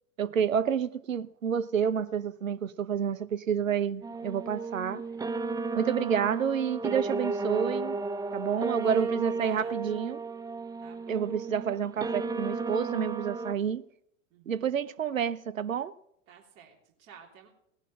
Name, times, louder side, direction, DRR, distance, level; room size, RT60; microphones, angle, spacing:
voice 1, 0.2-5.0 5.7-8.0 8.3-10.2 11.1-13.8 14.5-15.9, right 7 dB, 80° right, 0.8 m, -29 dB
sound 1, 4.0-13.5, right 4 dB, 10° right, 0.6 m, -34 dB
voice 2, 8.5-10.0 10.8-11.3 14.3-14.6 16.3-17.5, right 8 dB, 40° right, 3.3 m, -53 dB
18.0 x 11.0 x 4.8 m
figure-of-eight pair, 85°, 39 cm